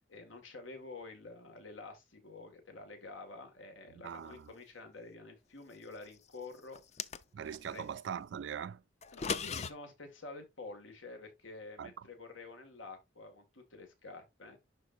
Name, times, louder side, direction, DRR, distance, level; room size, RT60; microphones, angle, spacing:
voice 1, 0.1-6.8 7.7-7.9 9.1-14.6, left 3 dB, 90° left, 2.2 m, -49 dB
voice 2, 4.0-4.5 7.3-8.8 11.8-11.9, right 8 dB, 65° right, 0.3 m, -41 dB
sound 1, 6.7-7.6 9.0-9.7, left 5 dB, 35° left, 0.5 m, -37 dB
11.5 x 4.3 x 2.6 m
head